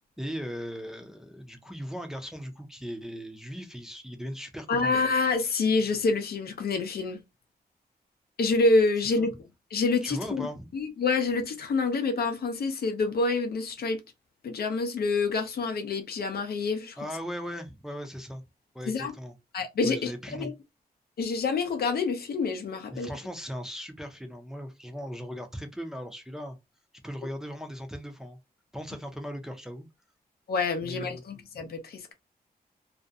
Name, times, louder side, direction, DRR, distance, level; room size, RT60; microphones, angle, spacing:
voice 1, 0.2-4.9 9.2-9.3 10.0-10.7 17.0-18.4 18.7-19.3 19.8-20.5 22.9-26.6 27.0-28.4 28.7-29.9 30.8-31.2 31.5-31.7, equal, 5° right, 0.5 m, -38 dB
voice 2, 4.7-7.2 8.4-9.3 9.7-10.5 10.7-14.0 14.4-17.0 18.9-19.1 19.5-20.5 21.2-23.1 30.5-32.1, left 3 dB, 70° left, 0.6 m, -27 dB
2.4 x 2.1 x 2.6 m
wide cardioid pair, 140°, 17 cm